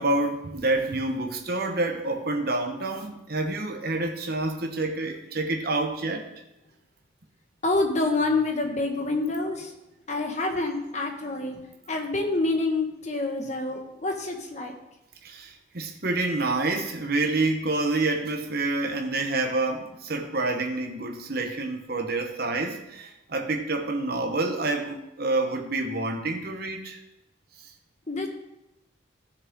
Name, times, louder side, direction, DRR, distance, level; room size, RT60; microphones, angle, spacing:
voice 1, 0.0-6.3 15.2-27.0, right 2 dB, 50° right, 1.1 m, -28 dB
voice 2, 7.6-9.7 10.1-11.6 11.9-14.7 28.1-28.3, left 2 dB, 35° left, 1.4 m, -27 dB
15.5 x 6.6 x 3.7 m
head